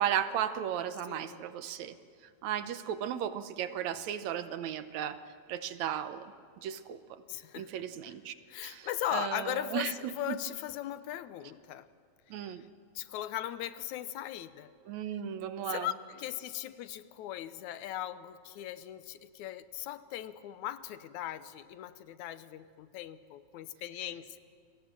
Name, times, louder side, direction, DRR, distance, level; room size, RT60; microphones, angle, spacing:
voice 1, 0.0-1.9 2.4-5.2 5.5-6.3 6.6-7.0 7.6-8.3 8.6-9.9 10.3-10.4 12.3-12.6 14.9-15.9, right 10 dB, 75° right, 11 dB, 2.2 m, -35 dB
voice 2, 1.0-1.4 7.3-8.2 8.5-11.9 12.4-12.6 13.0-14.7 15.7-24.4, left 12 dB, 80° left, 13 dB, 2.2 m, -39 dB
29.5 x 23.0 x 7.5 m, 2.1 s
omnidirectional pair, 3.4 m